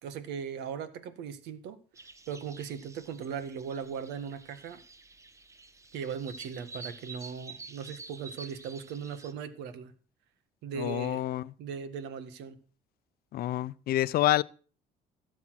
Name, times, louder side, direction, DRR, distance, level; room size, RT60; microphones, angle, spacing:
voice 1, 0.0-1.8 2.3-4.8 5.9-9.9 10.6-11.2 11.6-12.6, right 7 dB, 90° right, 1.7 m, -38 dB
sound 1, 2.0-9.3, right 3 dB, 15° right, 1.1 m, -49 dB
voice 2, 10.7-11.5 13.3-14.4, left 14 dB, 65° left, 0.6 m, -28 dB
17.0 x 7.3 x 6.2 m
cardioid pair, 110°, 17 cm